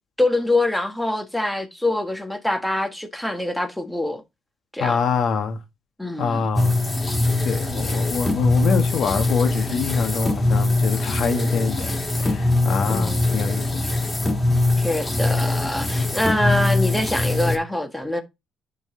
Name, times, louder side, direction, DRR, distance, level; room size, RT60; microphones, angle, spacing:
voice 1, 0.2-4.2 4.7-5.0 6.0-6.5 12.9-13.6 14.8-18.2, left 1 dB, 5° left, 1.4 m, -24 dB
voice 2, 4.8-5.6 6.2-6.8 7.4-13.8 16.0-16.1, left 6 dB, 60° left, 1.3 m, -25 dB
sound 1, 6.5-17.6, left 2 dB, 20° left, 2.4 m, -22 dB
11.0 x 4.0 x 3.8 m
cardioid pair, 90°, 0 cm